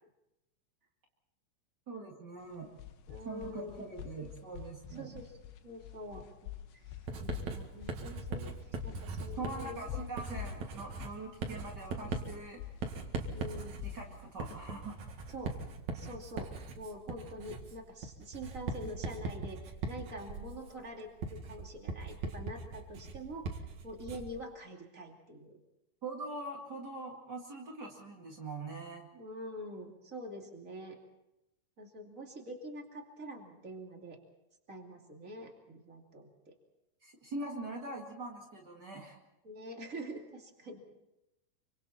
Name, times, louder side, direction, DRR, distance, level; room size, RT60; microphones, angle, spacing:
voice 1, 1.9-2.7 3.2-5.1 9.4-12.6 13.8-15.0 26.0-29.1 37.0-39.2, right 2 dB, 75° right, -1 dB, 0.9 m, -43 dB
sound 1, 2.4-15.7, left 12 dB, 70° left, 2.9 m, -47 dB
voice 2, 3.1-3.9 5.0-5.3 5.6-6.2 6.7-6.9 7.2-8.5 8.8-10.0 13.3-13.8 15.3-15.5 15.9-16.5 16.7-25.6 29.1-31.0 31.8-34.2 34.7-36.5 39.4-40.8, equal, 30° right, 1 dB, 1.6 m, -45 dB
Writing, 7.1-24.4, right 4 dB, 55° right, 2.3 m, -40 dB
27.5 x 25.0 x 4.4 m, 0.91 s
omnidirectional pair, 5.8 m